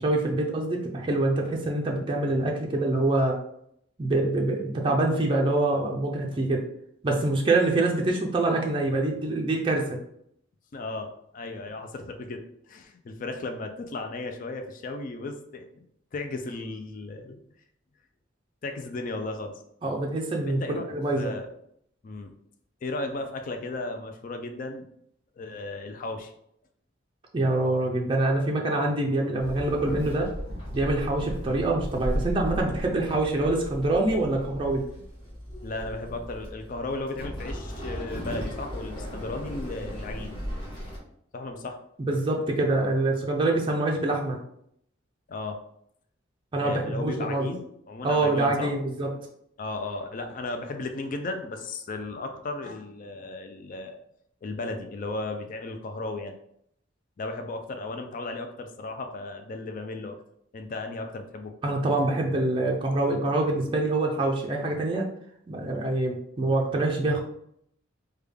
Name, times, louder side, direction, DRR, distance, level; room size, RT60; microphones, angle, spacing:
voice 1, 0.0-3.4 4.0-6.6 7.0-10.0 19.8-21.3 27.3-30.3 30.7-34.8 42.0-44.4 46.5-47.5 48.0-49.1 61.6-65.1 65.5-67.2, right 2 dB, 25° right, 0 dB, 0.4 m, -25 dB
voice 2, 10.7-15.8 16.1-17.4 18.6-19.5 20.4-21.5 22.0-22.3 22.8-24.9 25.4-26.3 35.6-40.3 41.3-41.8 45.3-45.6 46.6-48.7 49.6-54.0 54.4-56.3 57.2-60.2 60.5-61.5, left 2 dB, 45° left, 5 dB, 0.4 m, -35 dB
Walk footsteps / Chatter / Hiss, 29.4-41.0, equal, 30° left, 1.0 m, -36 dB
3.4 x 2.3 x 3.3 m, 0.71 s
head